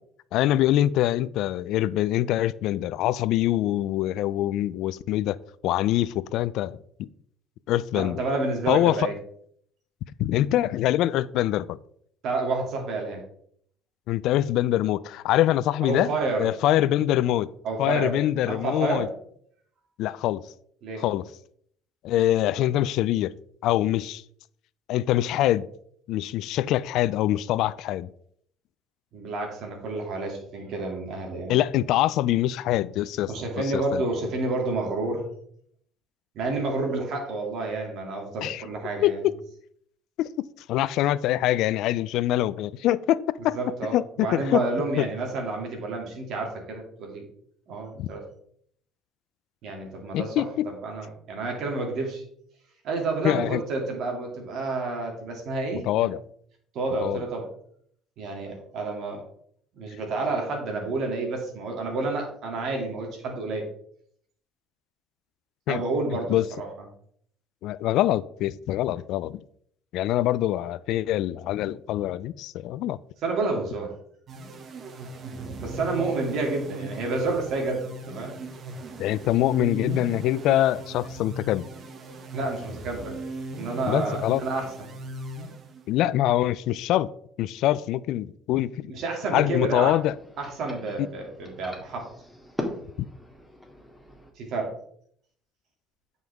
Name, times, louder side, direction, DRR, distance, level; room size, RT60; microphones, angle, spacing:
voice 1, 0.3-5.4 5.6-6.8 7.7-8.2 8.7-9.1 10.2-11.8 14.1-16.1 16.4-17.5 17.8-19.1 20.0-20.4 21.0-21.3 22.0-23.3 23.6-24.2 24.9-25.7 26.1-28.1 31.5-33.3 33.6-34.0 38.4-38.6 39.0-39.3 40.2-43.6 43.9-44.6 45.0-45.1 48.0-48.1 50.1-50.7 53.2-53.6 55.8-56.2 57.0-57.2 65.7-65.8 66.3-66.5 67.6-69.4 69.9-73.0 79.0-81.7 83.9-84.4 85.9-87.1 87.4-88.9 89.3-90.1 91.0-91.1 93.0-93.1, left 13 dB, 70° left, 0.3 m, -24 dB
voice 2, 7.9-9.1 12.2-13.2 15.8-16.5 17.6-19.1 20.8-21.0 29.1-31.6 33.3-35.3 36.3-39.2 43.5-47.3 47.7-48.2 49.6-52.2 52.8-56.1 56.7-57.5 58.2-59.2 59.8-63.7 65.7-66.7 73.2-73.9 75.6-78.3 82.3-83.2 83.6-84.9 88.9-90.0 90.4-92.1 94.4-94.8, right 3 dB, 65° right, 2.5 m, -29 dB
sound 1, 74.3-86.0, right 1 dB, 50° right, 1.2 m, -38 dB
sound 2, 89.2-94.3, left 1 dB, 5° left, 1.7 m, -40 dB
9.3 x 5.5 x 3.5 m
supercardioid pair, 80°, 0 cm